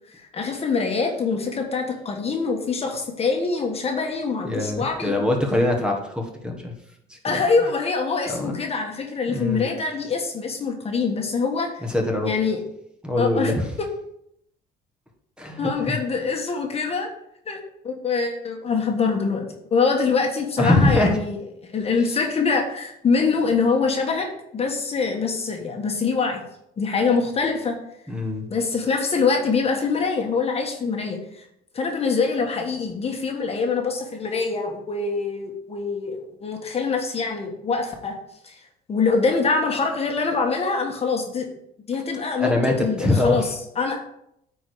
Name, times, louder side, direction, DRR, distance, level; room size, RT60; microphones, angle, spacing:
voice 1, 0.2-5.2 7.2-11.8 12.2-12.6 13.2-13.5 15.6-17.1 17.4-19.4 19.7-21.4 21.6-26.4 26.8-27.8 28.5-31.5 31.7-38.2 38.4-38.6 38.9-41.5 41.9-44.0, left 4 dB, 35° left, 2 dB, 1.4 m, -24 dB
voice 2, 4.4-6.7 7.1-7.2 8.3-8.6 9.3-9.6 11.9-12.3 13.0-13.6 15.4-15.7 20.6-21.2 28.1-28.4 42.4-42.7 43.0-43.5, left 2 dB, 5° right, 1 dB, 1.5 m, -22 dB
9.0 x 4.7 x 4.9 m, 0.76 s
cardioid pair, 110°, 17 cm